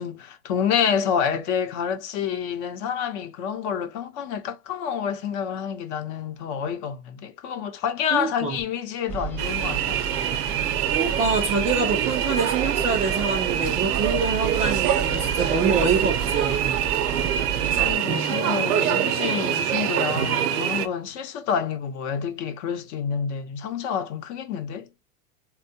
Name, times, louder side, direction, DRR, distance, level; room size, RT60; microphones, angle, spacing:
voice 1, 0.0-10.0 17.8-24.9, left 7 dB, 50° left, 0.8 m, -28 dB
voice 2, 8.1-8.6 10.9-16.8 18.1-18.5, right 4 dB, 15° right, 0.3 m, -26 dB
sound 1, 9.1-17.9, right 5 dB, 5° left, 0.7 m, -33 dB
sound 2, 9.4-20.9, right 10 dB, 85° right, 0.7 m, -25 dB
3.5 x 2.2 x 2.7 m
supercardioid pair, 135°, 44 cm